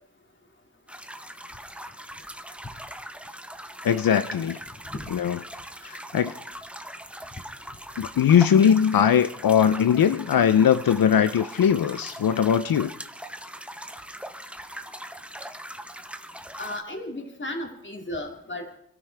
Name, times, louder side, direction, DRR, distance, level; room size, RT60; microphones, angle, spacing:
sound 1, 0.9-16.8, right 1 dB, 5° right, 0.8 m, -41 dB
voice 1, 3.8-4.6 5.1-5.4 5.8-6.3 8.0-12.9, left 8 dB, 85° left, 11 dB, 0.5 m, -20 dB
voice 2, 16.6-18.8, left 1 dB, 35° left, 3 dB, 2.3 m, -34 dB
25.5 x 13.0 x 3.4 m, 0.69 s
wide cardioid pair, 95°, 34 cm